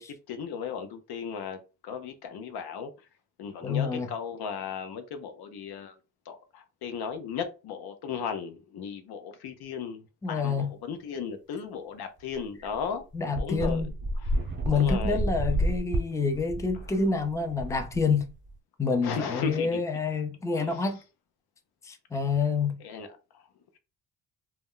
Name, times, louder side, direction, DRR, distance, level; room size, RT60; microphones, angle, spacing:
voice 1, 0.0-2.9 3.4-6.0 6.3-13.0 13.3-13.8 14.2-14.4 14.7-15.3 19.0-19.8 20.6-20.8 22.8-23.1 23.3-23.4, left 6 dB, 75° left, 0.7 m, -36 dB
voice 2, 3.6-4.1 10.2-10.7 13.1-13.9 14.6-18.3 18.8-21.0 21.8-22.8, left 4 dB, 10° left, 0.5 m, -27 dB
sound 1, 12.3-12.4 12.7-12.8 13.3-18.5, right 1 dB, 30° right, 0.8 m, -30 dB
2.2 x 2.1 x 3.6 m
cardioid pair, 80°, 38 cm